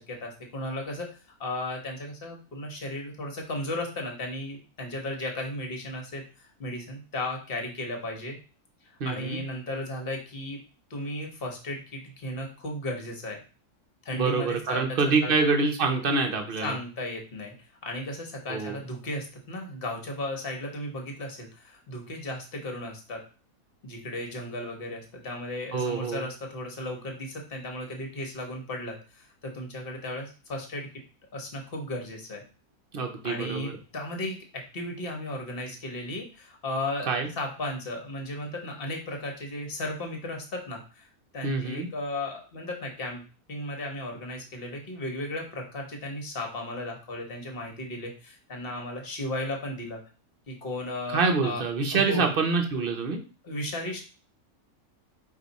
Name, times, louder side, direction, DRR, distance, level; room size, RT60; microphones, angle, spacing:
voice 1, 0.0-8.4 9.0-10.6 10.9-13.4 14.0-15.3 16.6-17.5 17.8-23.2 23.8-30.9 31.3-32.4 33.2-37.1 37.4-43.2 43.5-50.0 50.5-51.6 51.9-52.3 53.4-54.0, left 1 dB, 40° left, 2 dB, 1.1 m, -35 dB
voice 2, 9.0-9.4 14.1-16.7 18.5-18.8 25.7-26.2 32.9-33.7 37.1-37.3 41.4-41.9 51.1-53.2, right 4 dB, 50° right, 4 dB, 0.7 m, -26 dB
4.8 x 2.7 x 4.0 m, 0.36 s
omnidirectional pair, 1.6 m